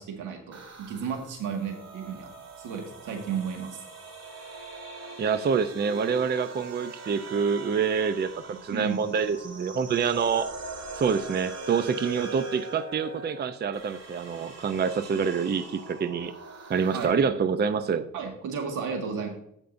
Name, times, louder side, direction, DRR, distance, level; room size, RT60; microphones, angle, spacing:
voice 1, 0.0-2.3 2.6-3.8 8.7-9.1 16.9-17.2 18.1-19.3, right 6 dB, 85° right, 3 dB, 1.9 m, -33 dB
sound 1, 0.5-17.1, right 3 dB, 55° right, 2.2 m, -42 dB
voice 2, 5.2-10.5 10.9-16.3 16.7-18.1, right 6 dB, 35° right, 11 dB, 0.6 m, -26 dB
16.0 x 5.3 x 2.6 m, 0.73 s
cardioid pair, 90°, 30 cm